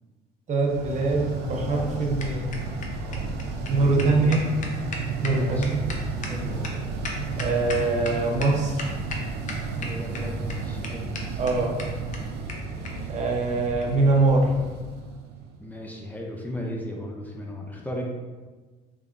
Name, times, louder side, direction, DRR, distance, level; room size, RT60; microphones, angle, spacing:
voice 1, 0.5-2.6 3.7-4.6 5.2-5.9 7.4-8.9 11.4-11.8 13.1-14.5, right 3 dB, 45° right, 1 dB, 0.7 m, -23 dB
sound 1, 0.6-15.6, right 3 dB, 80° right, 0.5 m, -33 dB
sound 2, 1.4-8.1 8.4-8.5 8.8-9.2 9.5-10.2 10.5-10.6 10.8-10.9 11.1-11.2 11.5-11.6 11.8-11.9 12.1-12.2 12.5-12.6 12.8-12.9 13.8-13.9, left 3 dB, 50° left, 0.7 m, -35 dB
voice 2, 3.0-3.4 3.8-4.7 5.3-5.7 6.3-6.8 9.8-11.4 15.6-18.0, left 1 dB, 10° left, -2 dB, 0.4 m, -36 dB
3.7 x 3.3 x 2.5 m, 1.3 s
cardioid pair, 110°, 17 cm